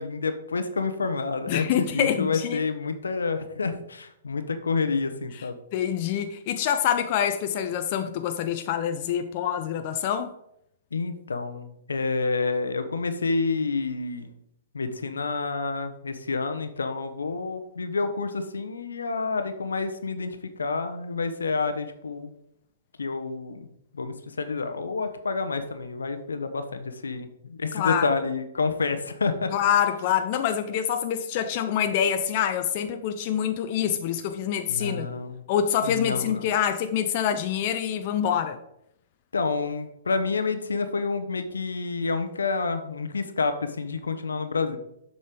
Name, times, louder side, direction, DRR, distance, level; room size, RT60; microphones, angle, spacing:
voice 1, 0.0-5.6 10.9-14.3 14.7-22.3 23.0-23.7 23.9-29.5 34.7-35.3 35.8-36.4 39.3-44.8, left 4 dB, 75° left, 9 dB, 0.9 m, -28 dB
voice 2, 1.5-2.6 5.7-10.3 27.7-28.1 29.5-35.1 35.5-38.6, left 9 dB, 45° left, 7 dB, 0.6 m, -26 dB
7.6 x 5.5 x 5.1 m, 0.77 s
figure-of-eight pair, 115°, 0 cm